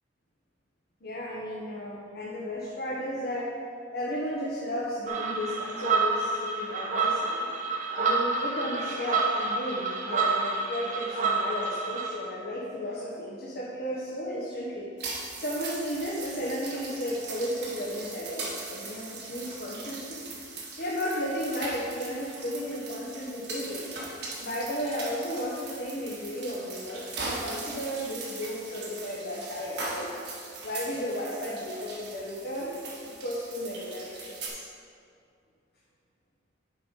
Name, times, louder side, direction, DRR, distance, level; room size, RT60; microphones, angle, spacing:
voice 1, 1.0-3.5 3.9-7.5 8.0-14.9 15.4-20.2 20.8-23.9 24.4-30.2 30.6-32.7 33.1-34.6, equal, 55° left, -6 dB, 1.0 m, -34 dB
sound 1, 5.1-12.1, right 4 dB, 40° right, 0.7 m, -28 dB
sound 2, 15.0-34.5, right 3 dB, 60° right, 1.5 m, -40 dB
6.7 x 5.2 x 5.2 m, 2.4 s
head